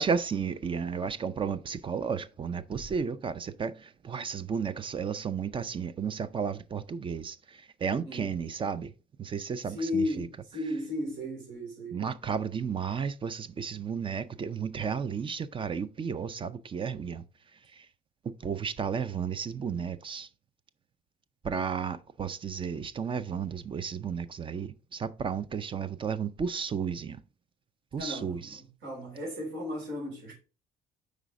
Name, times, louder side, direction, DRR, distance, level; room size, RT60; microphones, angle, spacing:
voice 1, 0.0-8.9 9.2-10.3 11.9-17.2 18.3-20.3 21.4-27.2 27.9-28.6, right 6 dB, 30° right, 0.4 m, -33 dB
voice 2, 8.0-8.4 9.7-12.1 28.0-30.3, left 1 dB, 80° right, 3.6 m, -35 dB
5.0 x 4.2 x 4.7 m
cardioid pair, 110°, 17 cm